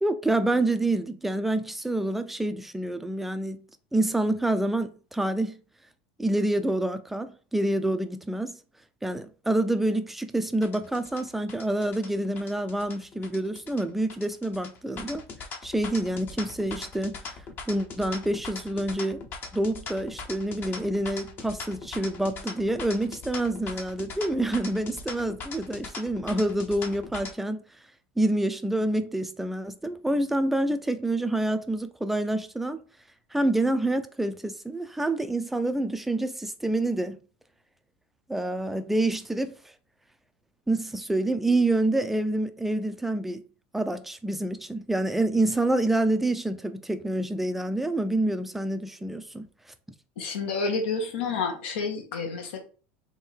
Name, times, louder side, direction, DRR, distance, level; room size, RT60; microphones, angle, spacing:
voice 1, 0.0-3.6 3.9-5.6 6.2-8.6 9.0-15.2 15.6-17.2 17.7-19.2 19.5-27.6 28.2-32.8 33.3-37.2 38.3-39.6 40.7-43.4 43.7-49.5, right 1 dB, 5° right, 0.4 m, -27 dB
sound 1, 10.6-27.3, left 4 dB, 35° left, 0.7 m, -40 dB
voice 2, 50.2-52.6, left 4 dB, 85° left, 1.2 m, -29 dB
3.6 x 2.6 x 4.4 m
supercardioid pair, 125°, 6 cm